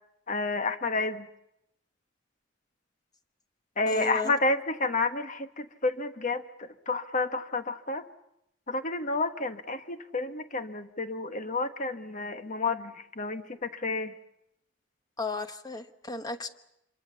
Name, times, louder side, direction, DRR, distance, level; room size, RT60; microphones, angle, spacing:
voice 1, 0.3-1.3 3.8-8.0 8.7-14.1, left 3 dB, 40° left, 8 dB, 1.3 m, -30 dB
voice 2, 3.9-4.3 15.2-16.5, left 2 dB, 20° left, 8 dB, 1.2 m, -34 dB
26.0 x 23.5 x 7.0 m, 0.81 s
head